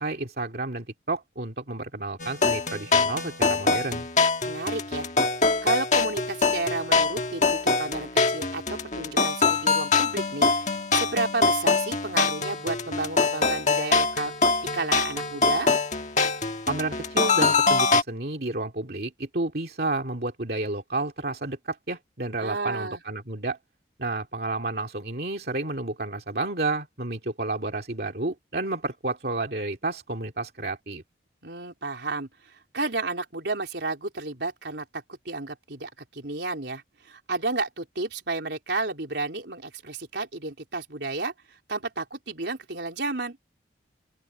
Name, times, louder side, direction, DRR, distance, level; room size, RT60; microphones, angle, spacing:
voice 1, 0.0-4.1 16.7-23.6 24.0-31.0, right 2 dB, 60° right, 2.4 m, -31 dB
sound 1, 2.2-18.0, left 4 dB, 40° left, 1.5 m, -24 dB
voice 2, 4.4-5.1 5.6-14.3 14.7-15.7 22.4-23.0 31.4-43.4, right 3 dB, 75° right, 3.9 m, -32 dB
open air
head